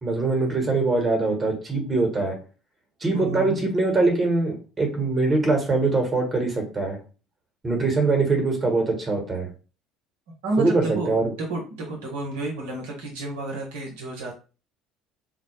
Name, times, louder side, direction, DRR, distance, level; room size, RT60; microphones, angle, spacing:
voice 1, 0.0-2.4 3.0-7.0 7.6-9.5 10.6-11.3, right 3 dB, 30° right, 2 dB, 1.0 m, -23 dB
voice 2, 3.1-3.6 10.4-14.3, right 2 dB, 75° right, -1 dB, 0.7 m, -30 dB
2.2 x 2.0 x 3.0 m, 0.34 s
hypercardioid pair, 65°, 0 cm